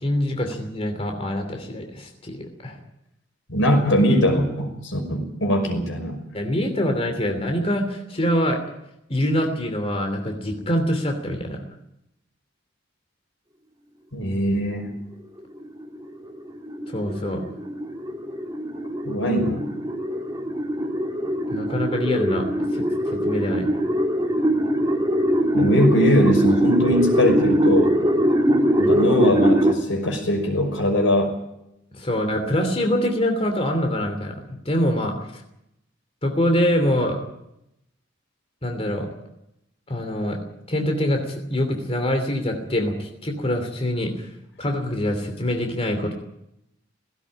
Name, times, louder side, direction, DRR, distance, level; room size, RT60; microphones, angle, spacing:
voice 1, 0.0-2.8 6.3-8.6 9.1-11.6 16.9-17.5 21.5-22.5 22.7-23.7 28.8-28.9 31.9-35.4 36.2-37.2 38.6-39.1 39.9-40.4 40.7-44.3 44.6-46.1, equal, 30° left, 4 dB, 2.9 m, -24 dB
voice 2, 3.5-6.2 14.1-14.9 19.1-19.7 25.5-27.9 28.8-31.4, equal, 85° left, 5 dB, 5.7 m, -21 dB
sound 1, 15.4-29.7, equal, 20° right, 2.3 m, -22 dB
17.5 x 17.0 x 9.8 m, 0.84 s
head